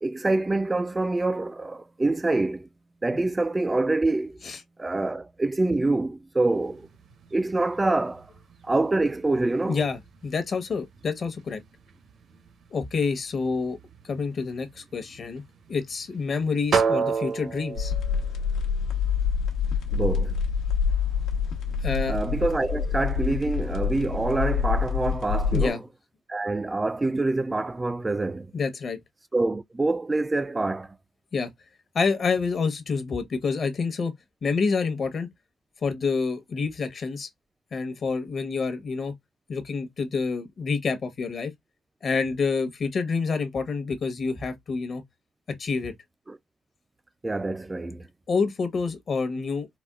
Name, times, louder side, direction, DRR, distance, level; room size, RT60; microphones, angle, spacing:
voice 1, 0.0-2.7 3.0-4.4 4.8-6.9 7.3-8.3 8.6-9.8 19.9-20.4 22.1-25.8 26.3-28.5 29.3-31.0 46.3-46.4 47.2-48.1, right 2 dB, 20° right, 0.3 m, -26 dB
sound 1, 6.5-23.8, right 6 dB, 65° right, 0.8 m, -36 dB
voice 2, 9.7-11.6 12.7-13.8 14.0-15.4 15.7-17.9 21.8-22.2 25.5-25.8 28.5-29.0 31.3-31.5 31.9-34.1 34.4-35.3 35.8-37.3 37.7-39.1 39.5-41.5 42.0-45.0 45.6-45.9 48.3-49.7, left 4 dB, 50° left, 0.9 m, -27 dB
sound 2, 17.8-25.7, left 6 dB, 80° left, 0.9 m, -26 dB
4.1 x 2.2 x 2.3 m
cardioid pair, 90°, 0 cm